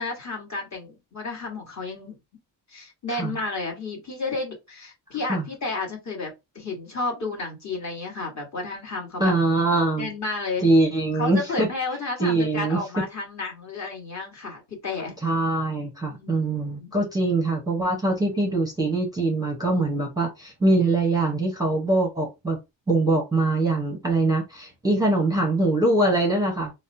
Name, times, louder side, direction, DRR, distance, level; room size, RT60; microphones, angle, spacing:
voice 1, 0.0-2.1 2.7-6.3 6.5-9.3 10.0-10.7 11.1-15.1 16.1-16.3 16.8-16.9, left 3 dB, 35° left, 1.4 m, -32 dB
voice 2, 9.2-10.1 10.6-11.7 12.2-13.0 15.2-22.6 22.9-26.7, right 2 dB, 10° right, 0.8 m, -23 dB
4.0 x 2.1 x 2.6 m
cardioid pair, 125°, 47 cm